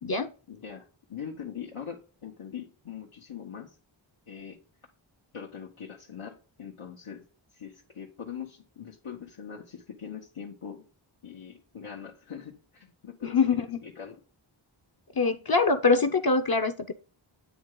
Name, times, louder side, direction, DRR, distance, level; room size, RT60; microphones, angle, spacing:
voice 1, 0.5-3.7 4.3-4.6 5.3-7.3 7.5-10.8 11.2-14.2, left 7 dB, 90° left, -3 dB, 1.1 m, -42 dB
voice 2, 13.2-13.8 15.2-16.9, left 4 dB, 45° left, 7 dB, 0.6 m, -24 dB
9.2 x 3.3 x 3.7 m, 0.38 s
wide cardioid pair, 45°, 49 cm